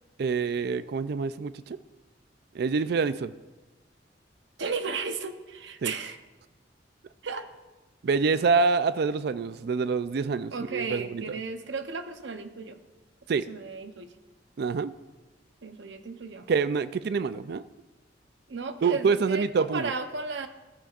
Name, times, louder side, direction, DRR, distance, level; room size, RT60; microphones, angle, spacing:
voice 1, 0.2-1.8 2.5-3.3 5.8-5.9 8.0-11.4 13.3-13.5 14.6-14.9 16.5-17.6 18.8-19.9, right 5 dB, 60° right, 14 dB, 0.4 m, -26 dB
voice 2, 4.6-6.2 7.2-7.5 10.5-12.8 13.5-14.1 15.6-16.5 18.5-20.5, right 4 dB, 80° right, 8 dB, 0.8 m, -34 dB
14.5 x 14.0 x 2.5 m, 1.2 s
head